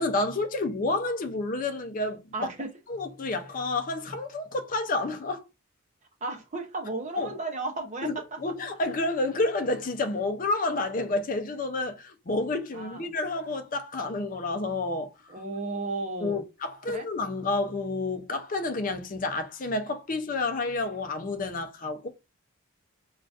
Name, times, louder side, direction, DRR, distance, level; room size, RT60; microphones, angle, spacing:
voice 1, 0.0-2.2 2.9-5.5 7.2-7.3 8.0-15.1 16.2-22.1, left 2 dB, 40° left, 0.5 m, -29 dB
voice 2, 2.3-2.7 6.2-8.4 12.7-13.1 15.3-16.4 16.9-17.1, right 3 dB, 35° right, 0.7 m, -34 dB
3.8 x 2.4 x 2.4 m
head